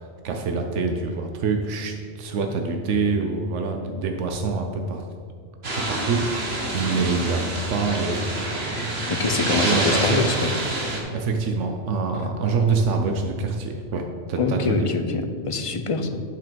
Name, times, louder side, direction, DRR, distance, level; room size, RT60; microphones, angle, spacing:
voice 1, 0.0-5.0 5.7-7.4 7.7-8.9 9.4-10.3 11.1-14.9, right 4 dB, 90° right, 4 dB, 1.1 m, -26 dB
sound 1, 5.6-11.0, right 2 dB, 60° right, 1.8 m, -27 dB
voice 2, 9.1-10.5 14.4-16.2, left 4 dB, 35° left, 7 dB, 0.5 m, -25 dB
10.0 x 6.0 x 5.1 m, 2.3 s
omnidirectional pair, 1.2 m